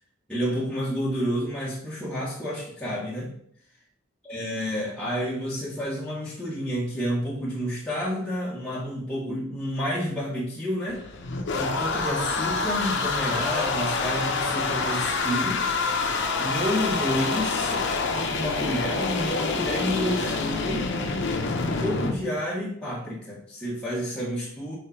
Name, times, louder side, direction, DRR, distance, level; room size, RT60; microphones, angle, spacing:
voice 1, 0.3-3.3 4.2-11.0 11.6-15.6 16.4-20.9 21.6-24.8, equal, 5° left, -7 dB, 1.2 m, -30 dB
sound 1, 10.9-22.1, left 4 dB, 55° left, 0.8 m, -27 dB
4.8 x 4.5 x 5.6 m, 0.64 s
head